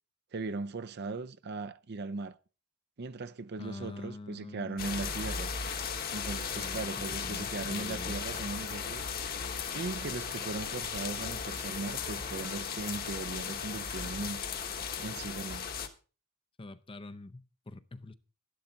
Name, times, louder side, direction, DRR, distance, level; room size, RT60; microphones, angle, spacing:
voice 1, 0.3-2.4 3.0-5.5 6.1-9.0 9.7-14.4 15.0-15.7, right 3 dB, 50° right, 0.6 m, -38 dB
voice 2, 3.6-5.1 6.5-8.5 16.6-18.1, left 2 dB, 25° left, 0.6 m, -45 dB
sound 1, 4.8-15.9, left 6 dB, 45° left, 1.2 m, -36 dB
12.0 x 11.5 x 4.0 m
head